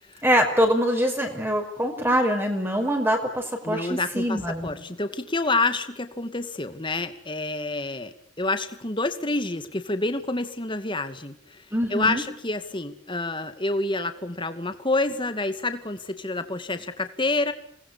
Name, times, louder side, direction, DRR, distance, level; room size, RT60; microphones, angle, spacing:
voice 1, 0.2-4.7 11.7-12.2, equal, 10° right, 4 dB, 5.5 m, -24 dB
voice 2, 3.6-17.5, left 2 dB, 25° left, 9 dB, 2.3 m, -28 dB
28.5 x 21.0 x 8.5 m, 0.62 s
head